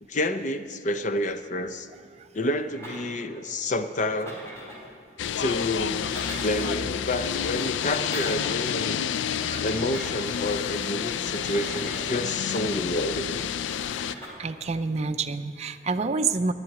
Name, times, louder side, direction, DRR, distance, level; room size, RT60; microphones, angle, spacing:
voice 1, 0.0-1.9 2.3-4.4 5.4-6.1 6.4-9.0 9.6-13.5, left 1 dB, 45° left, 9 dB, 0.6 m, -29 dB
sound 1, 2.7-3.4 4.0-4.9 5.8-6.8 7.6-8.6 9.5-10.3 11.3-13.0 13.8-14.3, equal, 15° left, 3.6 m, -41 dB
sound 2, 5.2-14.1, left 8 dB, 85° left, 0.4 m, -29 dB
voice 2, 14.4-16.5, right 4 dB, 35° right, 8 dB, 0.5 m, -28 dB
10.5 x 7.8 x 9.3 m, 2.1 s
head